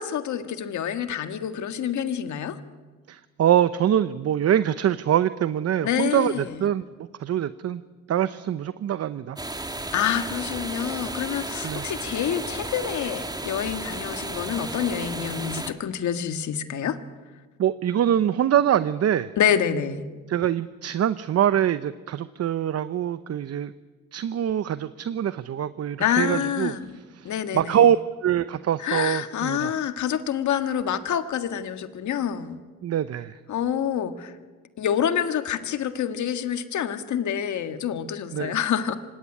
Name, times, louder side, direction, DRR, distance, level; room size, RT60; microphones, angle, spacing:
voice 1, 0.0-2.6 5.8-6.6 9.9-17.0 19.4-20.1 26.0-27.0 27.2-27.8 28.8-32.6 33.5-34.3 34.8-39.0, left 9 dB, 70° left, 9 dB, 1.8 m, -27 dB
voice 2, 3.1-6.8 7.2-7.8 8.1-9.4 11.6-11.9 17.6-19.3 20.3-23.7 24.1-26.7 27.1-28.0 28.2-29.7 32.8-33.4 38.3-38.5, right 10 dB, 55° right, 14 dB, 0.8 m, -24 dB
sound 1, 9.4-15.7, right 2 dB, 15° right, 1.8 m, -33 dB
25.5 x 18.0 x 10.0 m, 1.4 s
cardioid pair, 90°, 30 cm